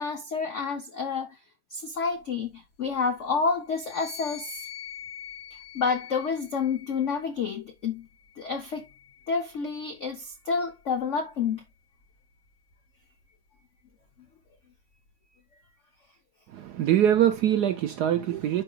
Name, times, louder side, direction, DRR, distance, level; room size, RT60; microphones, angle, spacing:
voice 1, 0.0-1.3 1.7-4.6 5.7-8.1 8.4-8.8 9.3-11.6, left 5 dB, 80° left, 0.6 m, -29 dB
sound 1, 3.7-7.3 8.1-9.7, left 10 dB, 60° left, 3.1 m, -44 dB
voice 2, 16.5-18.6, right 10 dB, 75° right, 0.9 m, -23 dB
11.0 x 4.4 x 2.3 m
omnidirectional pair, 2.3 m